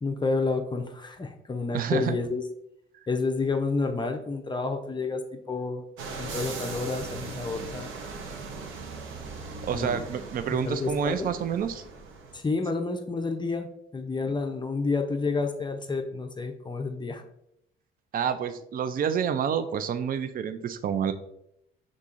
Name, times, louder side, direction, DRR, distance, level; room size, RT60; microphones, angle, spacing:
voice 1, 0.0-2.4 3.1-5.9 6.2-7.9 9.7-10.0 10.5-11.3 12.3-17.2, left 3 dB, 25° left, 5 dB, 0.5 m, -30 dB
voice 2, 1.7-2.2 2.9-3.0 9.6-11.8 18.1-21.1, right 7 dB, 45° right, 10 dB, 0.4 m, -28 dB
sound 1, 6.0-12.4, right 4 dB, 80° right, 0.8 m, -39 dB
5.4 x 3.7 x 2.5 m, 0.76 s
cardioid pair, 90°, 20 cm